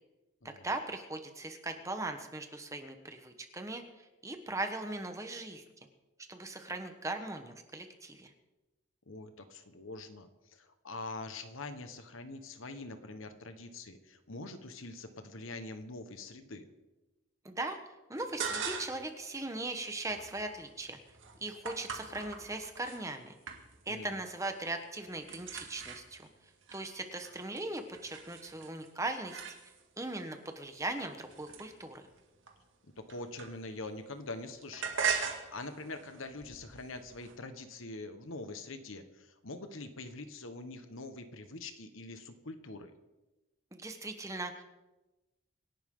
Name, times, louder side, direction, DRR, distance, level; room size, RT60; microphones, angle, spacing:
voice 1, 0.6-5.6 6.3-8.3 17.4-17.8 18.1-21.0 21.4-23.3 23.8-26.3 26.7-29.4 30.0-32.0 43.7-44.6, right 2 dB, 15° right, 6 dB, 1.2 m, -39 dB
voice 2, 9.1-16.7 23.9-24.2 33.0-42.9, left 2 dB, 75° left, 8 dB, 1.4 m, -44 dB
sound 1, 18.2-19.1 19.5-23.0 23.5-24.0 24.2-24.7 24.9-30.0 30.6-33.9 34.2-37.4, right 6 dB, 65° right, 1.9 m, -41 dB
25.5 x 11.5 x 3.8 m, 1.1 s
head